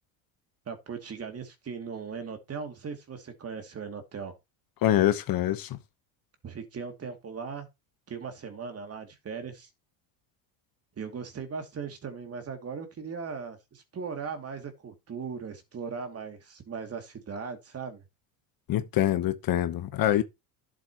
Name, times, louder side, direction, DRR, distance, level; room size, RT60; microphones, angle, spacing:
voice 1, 0.7-4.4 6.4-7.7 8.1-9.7 11.0-18.0, right 5 dB, 30° right, 2.6 m, -38 dB
voice 2, 4.8-5.8 18.7-20.2, left 13 dB, 50° left, 1.2 m, -25 dB
11.5 x 7.6 x 3.0 m
cardioid pair, 115°, 44 cm